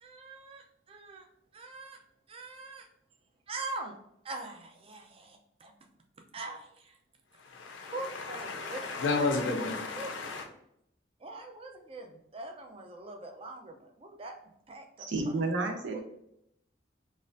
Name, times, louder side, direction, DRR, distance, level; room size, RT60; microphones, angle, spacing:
voice 1, 0.0-1.3 1.5-2.0 2.3-2.9 3.5-4.0 4.2-5.7 6.3-7.0 7.9-9.3 9.9-10.1 11.2-14.3 14.7-15.3 15.9-16.0, right 2 dB, 30° right, 4 dB, 0.4 m, -43 dB
voice 2, 7.4-10.4, left 3 dB, 85° left, 3 dB, 0.6 m, -32 dB
voice 3, 15.0-16.0, right 2 dB, 80° right, 3 dB, 0.7 m, -31 dB
4.1 x 2.5 x 2.5 m, 0.77 s
head